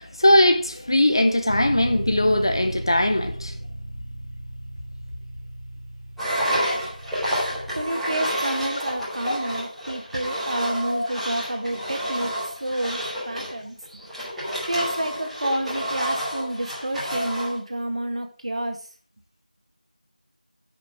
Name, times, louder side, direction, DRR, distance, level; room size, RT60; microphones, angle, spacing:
voice 1, 0.0-3.5 6.7-6.9 7.3-7.4 9.3-9.4 10.9-11.1, left 1 dB, 35° left, 0.7 m, -20 dB
Bass guitar, 1.5-7.7, right 1 dB, 30° right, 1.5 m, -35 dB
Engine, 6.2-17.6, equal, ahead, 1.2 m, -29 dB
voice 2, 7.7-13.8 14.6-18.9, right 1 dB, 45° right, 1.8 m, -29 dB
10.5 x 6.2 x 4.8 m
figure-of-eight pair, 175°, 5 cm